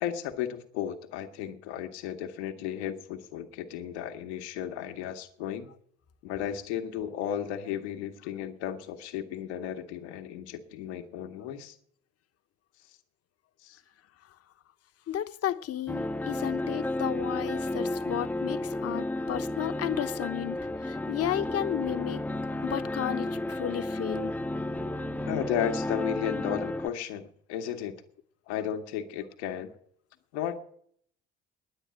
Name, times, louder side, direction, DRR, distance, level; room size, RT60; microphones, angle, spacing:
voice 1, 0.0-5.7 6.2-11.8 13.6-13.8 25.3-27.9 28.5-29.7 30.3-30.6, left 9 dB, 75° left, 1.3 m, -34 dB
voice 2, 15.1-22.2 22.6-24.3, left 11 dB, 45° left, 1.0 m, -33 dB
sound 1, 15.9-26.9, left 1 dB, 5° left, 0.7 m, -32 dB
10.0 x 8.7 x 10.0 m
hypercardioid pair, 55°, 33 cm